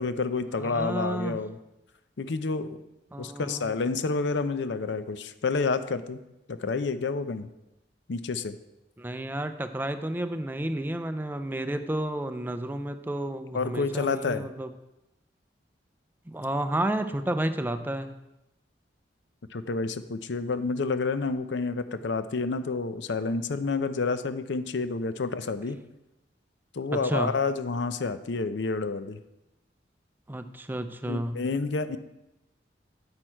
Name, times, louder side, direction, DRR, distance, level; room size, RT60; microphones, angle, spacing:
voice 1, 0.0-1.6 2.2-2.8 3.2-6.2 6.5-7.5 8.1-8.5 13.5-14.5 19.5-25.8 26.7-29.2 31.1-32.0, left 4 dB, 80° left, 11 dB, 0.6 m, -29 dB
voice 2, 0.6-1.4 3.1-3.7 9.0-14.7 16.3-18.1 26.9-27.3 30.3-31.4, right 1 dB, 10° right, 9 dB, 0.4 m, -31 dB
8.7 x 6.3 x 4.5 m, 0.93 s
head